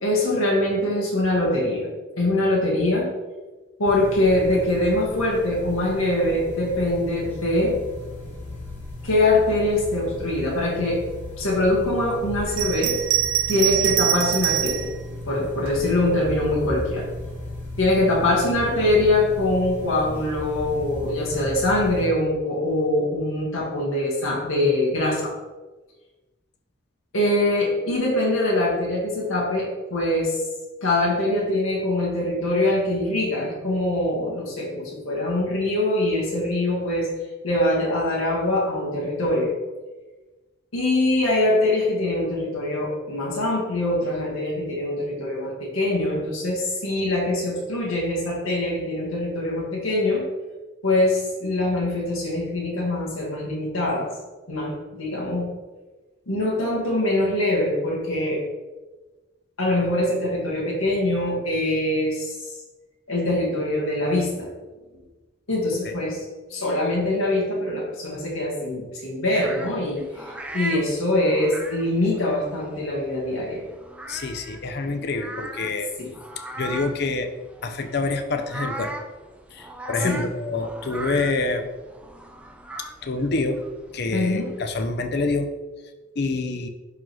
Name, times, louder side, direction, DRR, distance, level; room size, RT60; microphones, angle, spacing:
voice 1, 0.0-3.1 3.8-7.8 9.0-11.0 11.4-13.0 13.5-14.9 15.3-17.1 17.8-25.3 27.1-30.4 30.8-37.1 37.4-39.5 40.7-50.2 50.8-54.1 54.5-55.5 56.3-58.4 59.6-62.4 63.1-64.5 65.5-66.2 66.5-73.6 76.0-76.1 80.0-80.2 84.1-84.5, left 1 dB, 90° left, -4 dB, 1.9 m, -23 dB
sound 1, 3.9-22.1, left 1 dB, 10° left, 1.8 m, -36 dB
Bell, 12.5-14.9 15.7-16.6, right 13 dB, 70° right, 0.7 m, -24 dB
sound 2, 69.4-84.9, right 2 dB, 5° right, 0.4 m, -39 dB
voice 2, 74.1-75.9 76.6-77.3 77.6-78.9 79.5-81.7 83.0-83.6 83.9-85.5 86.2-86.7, left 3 dB, 50° left, 7 dB, 0.6 m, -26 dB
11.0 x 3.8 x 3.1 m, 1.2 s
head